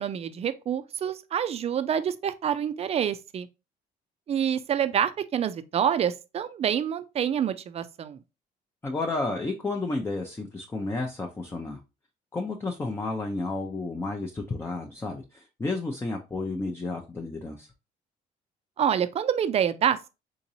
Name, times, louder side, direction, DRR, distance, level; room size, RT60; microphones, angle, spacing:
voice 1, 0.0-3.5 4.3-8.2 18.8-20.1, right 9 dB, 40° right, 0.4 m, -27 dB
voice 2, 8.8-11.8 12.3-17.7, left 3 dB, 15° left, 0.5 m, -31 dB
3.7 x 2.9 x 2.7 m
cardioid pair, 110°, 17 cm